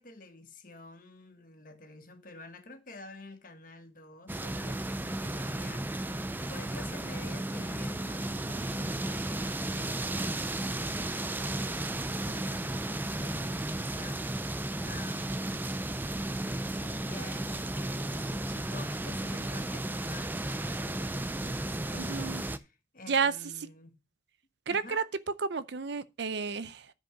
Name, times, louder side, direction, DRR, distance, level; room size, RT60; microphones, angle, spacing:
voice 1, 0.0-5.9 6.4-16.1 16.7-22.1 22.5-23.9 24.7-25.0, left 3 dB, 45° left, 1.4 m, -50 dB
sound 1, 4.3-22.6, right 1 dB, 10° right, 0.4 m, -34 dB
voice 2, 22.0-22.4 23.1-23.3 24.7-25.0 25.4-26.9, right 5 dB, 60° right, 0.6 m, -31 dB
10.5 x 5.2 x 4.9 m
head